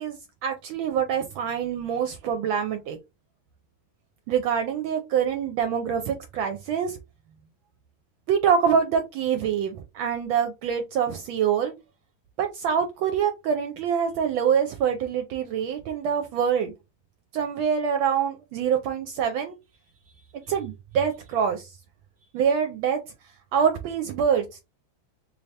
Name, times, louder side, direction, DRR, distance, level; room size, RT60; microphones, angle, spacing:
voice 1, 0.0-3.0 4.3-7.0 8.3-11.7 12.4-16.7 17.3-19.6 20.5-21.8 22.3-23.0 23.5-24.6, right 7 dB, 80° right, 1.3 m, -25 dB
3.4 x 2.7 x 3.2 m
omnidirectional pair, 2.2 m